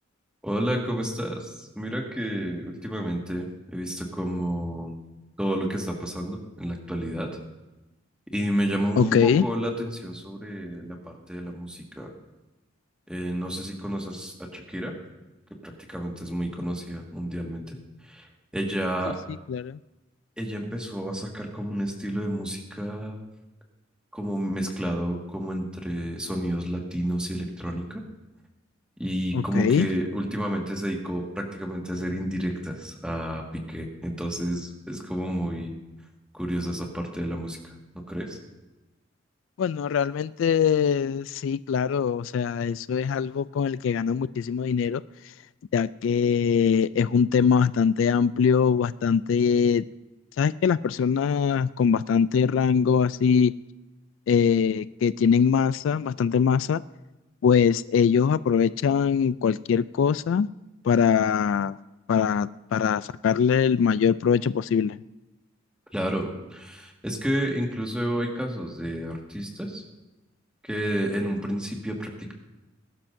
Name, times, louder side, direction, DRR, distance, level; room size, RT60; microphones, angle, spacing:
voice 1, 0.4-4.9 5.4-7.4 8.3-12.1 13.1-14.9 15.6-17.8 18.0-18.3 18.5-19.2 20.4-23.2 24.1-28.0 29.0-35.7 36.3-37.7 38.1-38.4 65.9-69.8 70.6-72.3, equal, 5° right, 1.8 m, -30 dB
voice 2, 9.0-9.4 19.5-19.8 29.3-29.9 39.6-45.0 45.7-49.8 50.4-53.5 54.3-56.8 57.4-60.5 60.8-61.7 62.1-65.0, left 7 dB, 75° left, 0.3 m, -22 dB
21.0 x 12.0 x 2.7 m
head